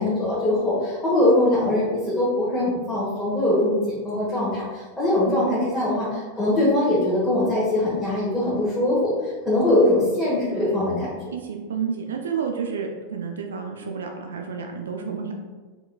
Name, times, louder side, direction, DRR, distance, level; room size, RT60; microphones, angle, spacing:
voice 1, 0.0-10.9, left 1 dB, 5° left, -11 dB, 1.4 m, -22 dB
voice 2, 5.2-5.6 10.5-10.9 11.3-15.3, right 6 dB, 65° right, 3 dB, 0.4 m, -30 dB
4.3 x 3.7 x 2.3 m, 1.3 s
figure-of-eight pair, 90°, 0 cm